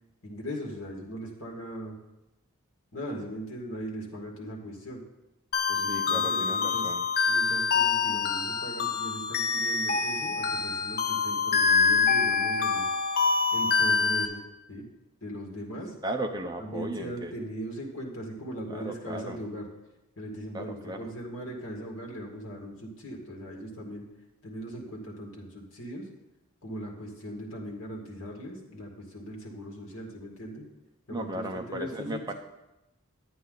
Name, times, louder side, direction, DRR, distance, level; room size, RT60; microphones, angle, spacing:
voice 1, 0.2-2.0 2.9-5.0 5.7-6.9 7.3-12.9 13.5-14.4 14.7-14.8 15.2-15.9 16.6-19.7 20.2-24.1 24.4-26.1 26.6-30.7 31.1-32.3, equal, 65° left, -1 dB, 2.1 m, -39 dB
sound 1, 5.5-14.3, left 5 dB, 45° left, 0.7 m, -26 dB
voice 2, 5.9-7.1 16.0-17.3 18.7-19.4 20.5-21.1 31.1-32.3, right 1 dB, 20° right, 3 dB, 0.7 m, -35 dB
10.5 x 8.5 x 4.0 m, 0.96 s
head